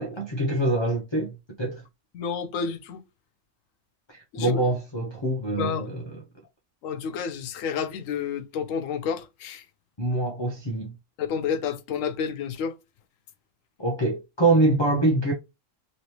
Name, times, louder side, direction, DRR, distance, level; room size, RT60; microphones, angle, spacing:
voice 1, 0.0-1.8 4.1-6.2 10.0-10.9 13.8-15.3, right 2 dB, 30° left, 0.5 m, -25 dB
voice 2, 2.1-3.0 4.3-4.6 5.6-5.9 6.8-9.6 11.2-12.7, left 6 dB, 85° left, 1.0 m, -30 dB
3.2 x 3.0 x 2.8 m
omnidirectional pair, 1.3 m